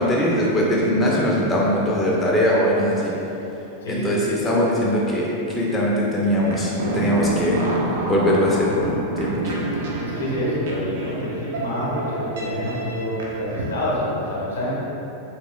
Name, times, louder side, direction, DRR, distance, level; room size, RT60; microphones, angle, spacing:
voice 1, 0.0-3.1 3.8-7.6 8.1-8.7 9.2-9.7, equal, 10° left, -5 dB, 0.4 m, -21 dB
sound 1, 6.4-13.6, right 1 dB, 60° right, 0.5 m, -28 dB
voice 2, 10.0-14.7, left 1 dB, 70° left, -6 dB, 0.7 m, -27 dB
3.0 x 2.9 x 2.2 m, 3.0 s
figure-of-eight pair, 90°, 0 cm